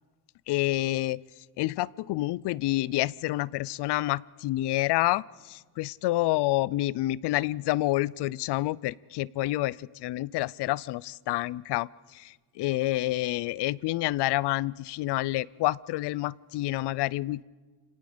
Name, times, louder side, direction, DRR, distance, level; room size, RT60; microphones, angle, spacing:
voice 1, 0.5-1.2 1.6-17.4, left 17 dB, 70° left, 24 dB, 0.5 m, -28 dB
29.5 x 18.0 x 5.1 m, 1.4 s
cardioid pair, 135°, 43 cm